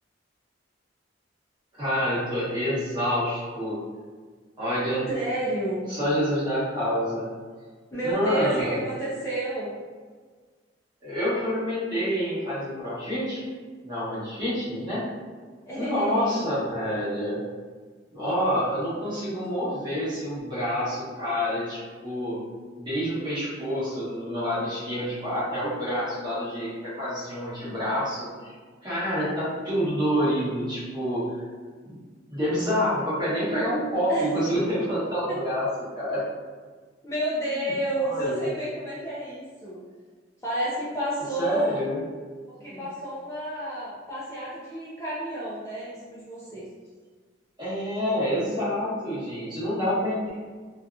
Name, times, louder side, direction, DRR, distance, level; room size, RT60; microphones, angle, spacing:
voice 1, 1.7-3.8 4.6-5.1 5.9-7.3 8.0-8.8 11.0-13.4 13.8-15.0 15.7-17.4 18.1-22.4 22.8-28.5 28.8-31.2 31.8-32.0 32.3-35.7 35.9-36.2 38.0-38.5 41.4-42.0 42.7-42.8 47.6-50.3, equal, 25° right, -10 dB, 1.1 m, -27 dB
voice 2, 5.1-5.9 7.9-9.7 15.7-16.4 19.0-19.3 34.1-34.3 35.3-35.4 37.0-39.8 40.4-41.8 42.6-46.7, right 1 dB, 15° left, -8 dB, 0.4 m, -30 dB
2.7 x 2.4 x 2.3 m, 1.5 s
head